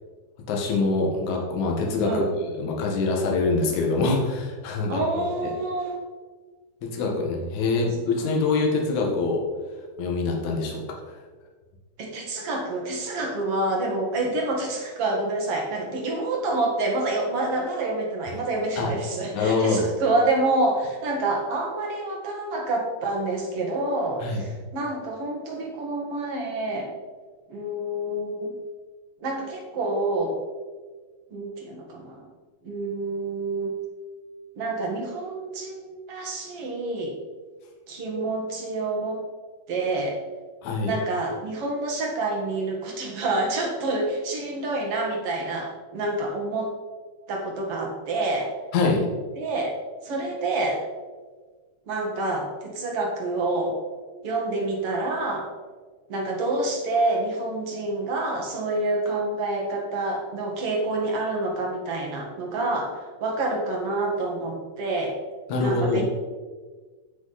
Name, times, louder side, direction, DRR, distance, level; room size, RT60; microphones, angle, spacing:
voice 1, 0.5-2.2 2.6-5.0 6.8-9.4 10.0-10.8 18.8-18.9 19.3-19.9 24.2-24.4 40.6-40.9 48.7-49.1 65.5-66.0, left 3 dB, 65° left, 0 dB, 2.9 m, -24 dB
voice 2, 4.9-6.0 12.0-26.9 27.5-28.5 29.2-30.3 31.3-32.2 32.6-33.7 34.6-37.2 37.9-39.2 39.7-40.2 40.8-46.7 47.3-48.5 49.4-49.7 50.0-50.8 51.9-53.8 54.2-55.5 56.1-65.1 65.6-66.0, right 2 dB, 50° right, -1 dB, 2.4 m, -27 dB
15.5 x 6.0 x 4.2 m, 1.4 s
omnidirectional pair, 3.9 m